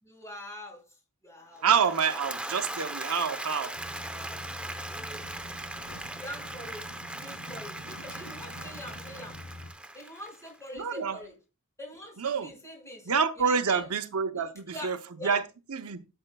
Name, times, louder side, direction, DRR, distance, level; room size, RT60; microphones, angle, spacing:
voice 1, 0.0-0.8 1.2-1.7 6.2-6.9 7.1-9.4 9.9-11.3 11.8-13.1 13.4-13.9 14.3-14.9 15.2-15.4, left 1 dB, 15° left, 5.7 m, -43 dB
Applause / Crowd, 1.6-10.7, right 1 dB, 5° right, 0.8 m, -39 dB
voice 2, 1.6-3.7 10.7-11.2 12.2-12.5 13.1-15.0 15.2-15.4 15.7-16.0, right 6 dB, 85° right, 0.8 m, -27 dB
sound 1, 3.7-9.7, left 1 dB, 85° left, 2.9 m, -46 dB
13.0 x 7.7 x 2.3 m
head